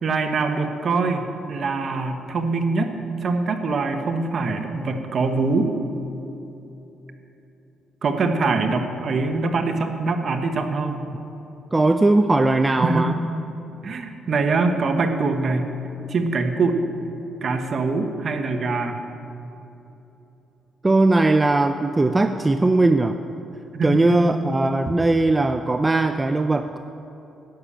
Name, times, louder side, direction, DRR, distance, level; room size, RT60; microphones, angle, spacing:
voice 1, 0.0-3.0 3.2-5.8 8.0-11.1 12.8-13.1 13.8-15.6 16.1-16.8 17.4-19.0 23.7-24.2, right 3 dB, 50° right, 6 dB, 1.1 m, -23 dB
voice 2, 11.7-13.1 20.8-23.2 23.8-26.8, right 2 dB, 20° right, 8 dB, 0.4 m, -19 dB
10.5 x 6.4 x 8.7 m, 3.0 s
cardioid pair, 90°, 0 cm